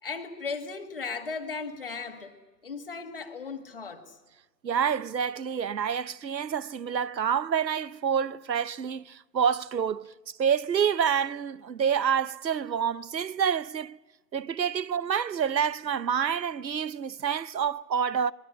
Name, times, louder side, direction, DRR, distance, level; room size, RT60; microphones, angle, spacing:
voice 1, 0.0-2.3 2.6-4.2, left 4 dB, 35° left, 1.8 m, -36 dB
voice 2, 4.6-10.1 10.4-14.0 14.3-18.3, right 7 dB, 85° right, 0.9 m, -28 dB
24.0 x 21.5 x 8.4 m
hypercardioid pair, 170°, 50 cm